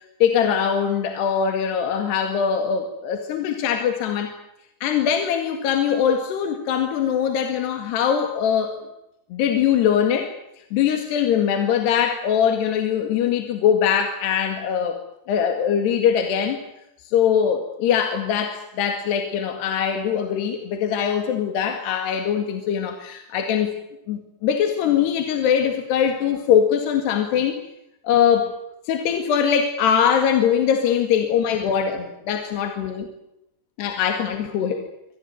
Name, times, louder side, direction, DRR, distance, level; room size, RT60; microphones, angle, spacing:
voice 1, 0.0-4.3 4.8-8.9 9.3-10.3 10.7-15.0 15.3-16.6 17.0-23.8 24.1-27.6 28.0-28.6 28.9-33.1 33.8-34.9, left 8 dB, 80° left, 5 dB, 4.1 m, -22 dB
26.0 x 18.0 x 9.4 m, 0.85 s
omnidirectional pair, 4.8 m